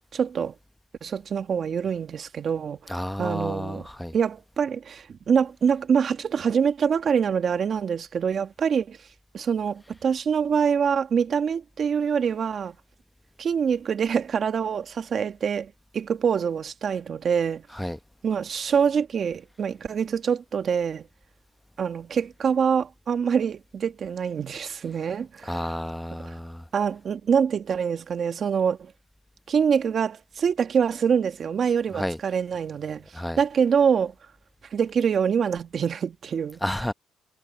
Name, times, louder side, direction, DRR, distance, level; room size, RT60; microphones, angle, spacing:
voice 1, 0.1-0.5 1.0-3.9 4.1-9.0 9.3-12.8 13.4-17.6 18.2-21.1 21.8-25.7 26.7-28.9 29.5-33.1 33.4-34.1 34.7-36.6, right 7 dB, 55° right, 1.8 m, -25 dB
voice 2, 2.9-4.1 17.7-18.0 25.4-26.6 31.9-32.2 33.1-33.4 36.6-36.9, left 1 dB, 5° left, 1.0 m, -31 dB
cardioid pair, 90°, 0 cm